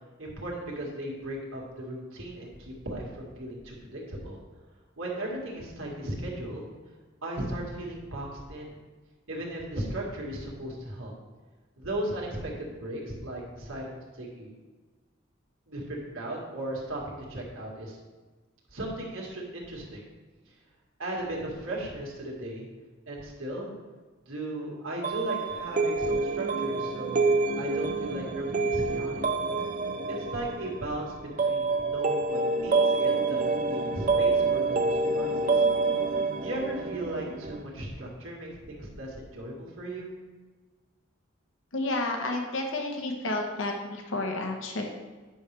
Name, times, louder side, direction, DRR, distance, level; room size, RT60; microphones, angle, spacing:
voice 1, 0.2-4.4 5.0-6.7 7.2-8.8 9.3-11.1 11.8-14.5 15.7-18.0 18.7-20.0 21.0-22.7 23.1-23.7 24.3-29.2 30.1-35.6 36.4-40.1, right 1 dB, 85° right, -2 dB, 2.0 m, -36 dB
sound 1, 25.0-37.6, right 3 dB, 40° right, 0.5 m, -27 dB
voice 2, 41.7-44.9, left 2 dB, 75° left, 2 dB, 1.1 m, -31 dB
9.8 x 6.2 x 3.4 m, 1.3 s
head